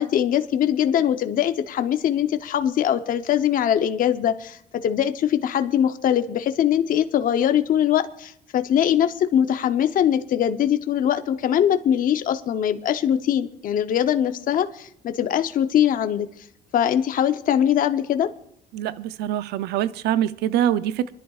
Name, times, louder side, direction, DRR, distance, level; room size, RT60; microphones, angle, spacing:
voice 1, 0.0-16.3 16.7-18.3, left 10 dB, 55° left, 0.8 m, -22 dB
voice 2, 18.7-21.1, right 11 dB, 80° right, 0.5 m, -24 dB
27.0 x 11.0 x 2.4 m
cardioid pair, 110°, 17 cm